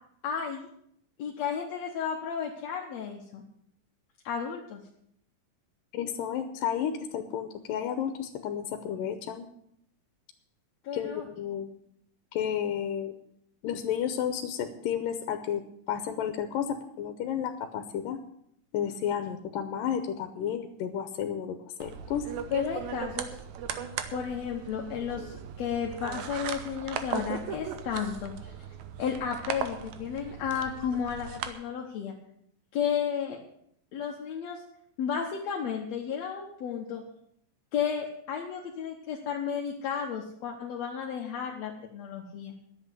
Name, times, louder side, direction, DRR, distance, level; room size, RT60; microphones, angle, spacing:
voice 1, 0.2-0.7 1.2-3.4 4.2-4.8 10.8-11.3 22.5-23.4 24.1-28.5 29.0-32.1 32.7-33.4 33.9-34.6 35.0-37.0 37.7-42.5, left 7 dB, 60° left, 0 dB, 2.1 m, -33 dB
voice 2, 5.9-9.5 10.9-11.7 12.3-13.1 13.6-15.6 15.9-18.2 18.7-22.3, left 9 dB, 85° left, 8 dB, 2.5 m, -32 dB
sound 1, 21.8-31.5, right 8 dB, 70° right, 2.1 m, -38 dB
10.5 x 8.1 x 9.6 m, 0.71 s
omnidirectional pair, 3.9 m